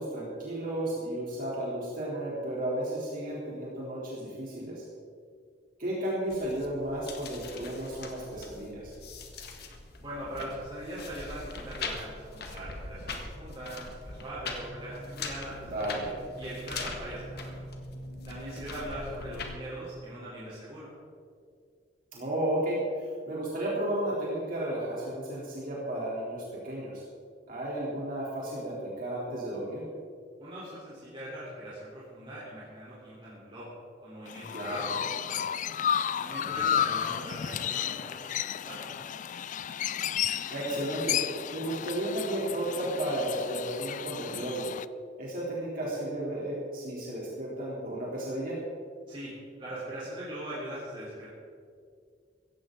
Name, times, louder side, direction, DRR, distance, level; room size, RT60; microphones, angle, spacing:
voice 1, 0.0-4.8 5.8-8.9 15.7-16.0 22.1-27.0 27.5-29.8 34.5-34.9 36.4-36.7 40.5-44.7 45.2-48.6, right 1 dB, 50° right, -6 dB, 3.3 m, -33 dB
sound 1, 6.3-19.6, left 3 dB, 65° left, 1.7 m, -41 dB
voice 2, 10.0-16.1 16.4-17.5 18.3-20.9 30.4-33.7 34.0-35.5 36.2-38.9 49.1-49.3 49.6-51.3, right 1 dB, 30° right, -9 dB, 3.6 m, -41 dB
Chirp tweet, 34.3-44.9, left 9 dB, 45° left, 0.4 m, -32 dB
16.5 x 15.0 x 3.9 m, 2.2 s
head